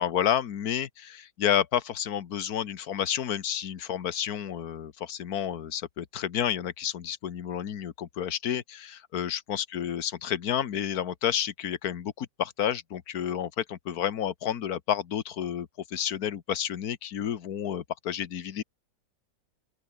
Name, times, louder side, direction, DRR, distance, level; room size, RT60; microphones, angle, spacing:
voice 1, 0.0-18.6, left 9 dB, 55° left, 1.6 m, -30 dB
open air
omnidirectional pair, 2.0 m